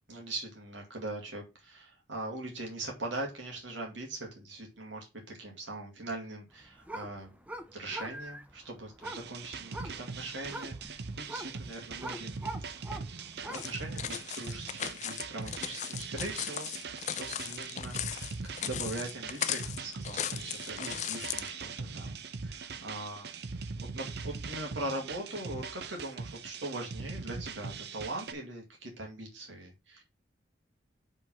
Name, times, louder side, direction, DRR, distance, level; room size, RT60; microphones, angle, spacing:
voice 1, 0.1-7.4 7.7-12.4 13.4-22.1 22.4-23.3 23.9-30.0, right 2 dB, 80° right, 0 dB, 2.1 m, -41 dB
sound 1, 6.5-13.8, right 1 dB, 10° right, 0.6 m, -44 dB
sound 2, 9.0-28.3, right 4 dB, 60° right, 0.6 m, -41 dB
sound 3, 13.5-21.5, left 10 dB, 40° left, 0.4 m, -37 dB
5.4 x 3.9 x 5.9 m, 0.26 s
head